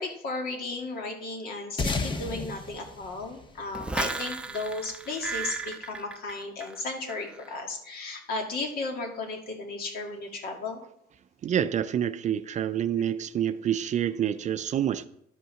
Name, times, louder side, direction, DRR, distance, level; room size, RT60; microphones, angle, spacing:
voice 1, 0.0-10.8 13.0-13.1, left 3 dB, 60° left, 2.2 m, -35 dB
sound 1, 1.8-4.6, left 3 dB, 30° left, 1.0 m, -33 dB
sound 2, 3.7-6.8 7.1-7.5, right 3 dB, 5° right, 0.6 m, -35 dB
voice 2, 11.4-15.1, right 9 dB, 45° right, 0.5 m, -27 dB
11.5 x 5.5 x 5.7 m
cardioid pair, 110°, 17 cm